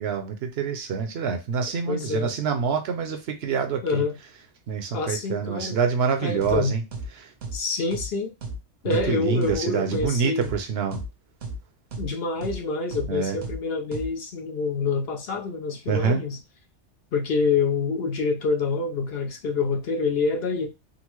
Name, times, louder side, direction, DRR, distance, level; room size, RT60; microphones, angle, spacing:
voice 1, 0.0-4.0 4.7-6.8 7.2-7.3 8.8-11.0 13.1-13.4 15.9-16.2, right 6 dB, 65° right, 0.8 m, -26 dB
voice 2, 1.9-2.3 3.8-4.2 4.9-5.8 6.2-6.8 7.5-8.3 8.8-10.5 12.0-16.4 17.1-20.7, left 4 dB, 60° left, 0.8 m, -26 dB
sound 1, 6.4-6.6 6.9-7.1 7.4-7.6 7.9-8.1 8.4-8.6 8.9-9.1 9.4-9.6 9.9-10.1 10.4-10.6 10.9-11.1 11.4-11.6 11.9-12.1 12.4-12.6 12.9-13.1 13.4-13.6 13.9-14.1, right 2 dB, 85° right, 1.1 m, -33 dB
3.8 x 2.0 x 2.9 m
omnidirectional pair, 1.2 m